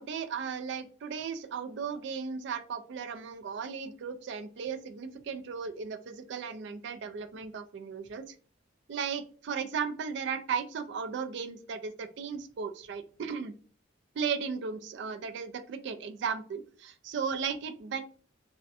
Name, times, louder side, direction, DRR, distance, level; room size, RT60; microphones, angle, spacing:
voice 1, 0.0-8.4 8.9-13.5 14.2-18.0, right 6 dB, 65° right, 9 dB, 0.3 m, -36 dB
2.6 x 2.1 x 2.3 m, 0.43 s
head